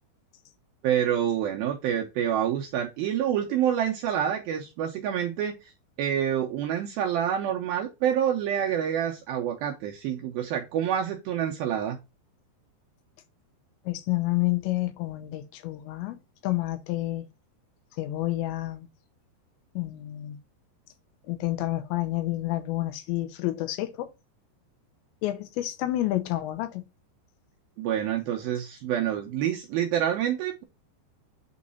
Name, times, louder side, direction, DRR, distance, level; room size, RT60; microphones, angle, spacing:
voice 1, 0.8-5.7 6.0-12.0 27.8-30.6, right 9 dB, 80° right, 2.2 m, -27 dB
voice 2, 13.9-16.2 16.4-17.3 18.0-18.9 19.8-20.4 21.3-24.1 25.2-26.8, left 16 dB, 90° left, 3.1 m, -29 dB
8.4 x 3.2 x 4.1 m
omnidirectional pair, 5.1 m